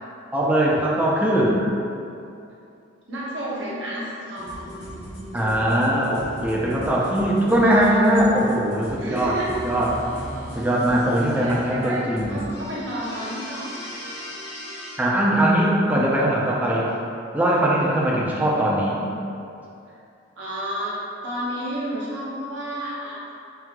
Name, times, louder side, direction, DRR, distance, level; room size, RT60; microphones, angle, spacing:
voice 1, 0.3-1.6 5.3-9.3 9.6-9.9 10.5-12.4 15.0-16.9 17.3-19.0, right 1 dB, 10° right, -5 dB, 0.5 m, -20 dB
voice 2, 3.1-4.7 9.0-9.6 11.4-14.2 19.9-20.0 20.4-21.0 21.2-23.2, equal, 80° right, -7 dB, 1.0 m, -31 dB
sound 1, 4.4-15.0, equal, 55° left, 1.4 m, -37 dB
5.8 x 2.8 x 2.2 m, 2.6 s
head